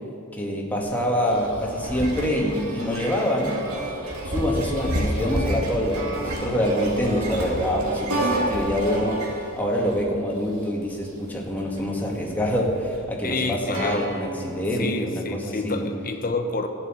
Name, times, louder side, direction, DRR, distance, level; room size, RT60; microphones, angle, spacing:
voice 1, 0.3-3.6 4.2-15.9, equal, 10° left, -2 dB, 2.0 m, -25 dB
sound 1, 0.7-14.6, right 1 dB, 85° right, 2.6 m, -30 dB
voice 2, 13.2-14.1 14.8-16.7, left 3 dB, 40° left, 6 dB, 1.0 m, -28 dB
15.5 x 7.0 x 9.1 m, 2.6 s
head